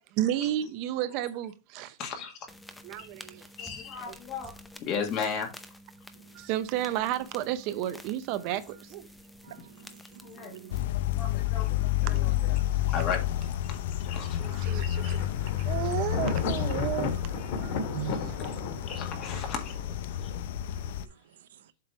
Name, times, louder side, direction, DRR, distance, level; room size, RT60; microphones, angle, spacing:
voice 1, 0.2-2.0 2.8-3.4 4.1-4.2 6.3-9.1 12.0-12.6 14.4-15.3 15.6-17.3 17.6-18.4, right 12 dB, 45° right, 0.7 m, -32 dB
voice 2, 2.0-2.5 3.0-3.1 3.6-5.5 10.2-10.6 11.2-12.6 12.9-13.2 13.7-15.2 17.4-17.8 18.2-18.6 18.9-19.7 20.2-20.6 20.9-21.1, left 6 dB, 35° left, 1.9 m, -36 dB
sound 1, 2.5-10.8, equal, 5° left, 0.7 m, -50 dB
voice 3, 3.0-3.4 6.1-6.4 9.4-10.9 17.9-18.1 20.7-21.7, right 11 dB, 85° right, 0.6 m, -53 dB
sound 2, 10.7-21.1, left 12 dB, 70° left, 0.6 m, -30 dB
Thunder, 14.0-20.4, left 4 dB, 55° left, 2.0 m, -36 dB
7.6 x 3.2 x 6.1 m
supercardioid pair, 145°, 0 cm